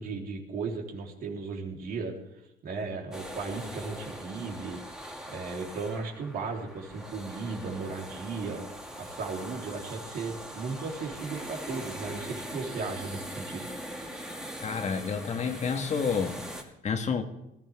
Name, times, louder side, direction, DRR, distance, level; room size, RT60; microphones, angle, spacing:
voice 1, 0.0-2.1 2.6-4.8 5.3-8.6 9.0-13.7, right 4 dB, 60° right, 0 dB, 3.7 m, -36 dB
sound 1, 3.1-16.6, equal, 5° right, 2.5 m, -41 dB
voice 2, 14.6-17.2, left 6 dB, 45° left, 5 dB, 1.7 m, -30 dB
19.5 x 14.0 x 3.6 m, 0.85 s
cardioid pair, 110°, 17 cm